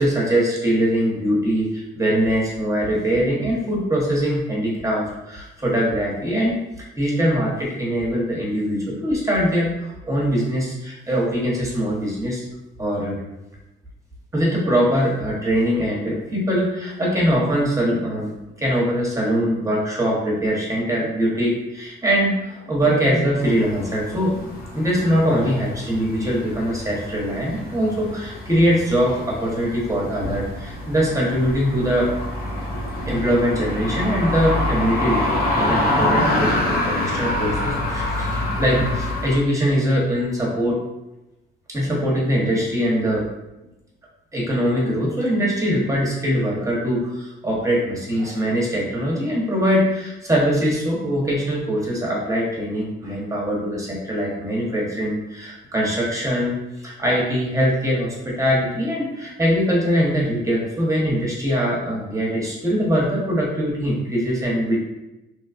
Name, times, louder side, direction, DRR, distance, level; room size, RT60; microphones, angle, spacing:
voice 1, 0.0-6.6 7.0-12.4 12.8-13.2 14.3-18.3 18.6-24.4 24.7-32.1 33.0-40.8 41.7-43.3 44.3-56.5 56.8-64.8, equal, 15° right, -4 dB, 0.9 m, -22 dB
sound 1, 23.4-39.4, left 1 dB, 50° left, 0.7 m, -26 dB
3.0 x 2.2 x 2.4 m, 0.96 s
cardioid pair, 90°, 20 cm